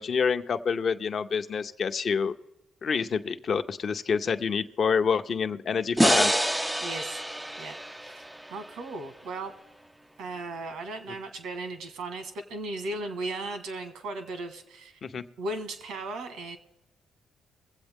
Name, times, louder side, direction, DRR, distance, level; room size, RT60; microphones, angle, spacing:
voice 1, 0.0-2.4 2.8-6.4 15.0-15.2, left 6 dB, 50° left, 9 dB, 0.7 m, -27 dB
sound 1, 6.0-9.2, right 1 dB, 5° right, 0.3 m, -27 dB
voice 2, 6.8-7.2 7.6-8.2 8.5-9.6 10.2-15.0 15.4-16.6, right 2 dB, 80° right, 8 dB, 1.5 m, -36 dB
23.0 x 8.0 x 3.6 m, 0.97 s
cardioid pair, 90°, 0 cm